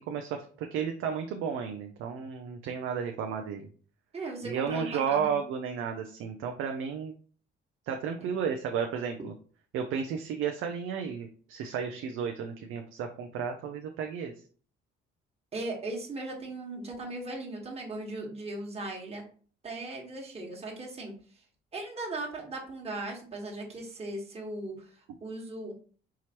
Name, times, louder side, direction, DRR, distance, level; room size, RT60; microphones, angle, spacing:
voice 1, 0.1-3.7 4.4-7.1 7.9-9.3 9.7-14.3, right 7 dB, 90° right, 4 dB, 0.5 m, -33 dB
voice 2, 4.1-5.4 8.2-8.3 15.5-19.2 19.6-21.1 21.7-25.7, right 2 dB, 30° right, 0 dB, 1.4 m, -38 dB
4.8 x 2.9 x 2.9 m, 0.43 s
cardioid pair, 90°, 20 cm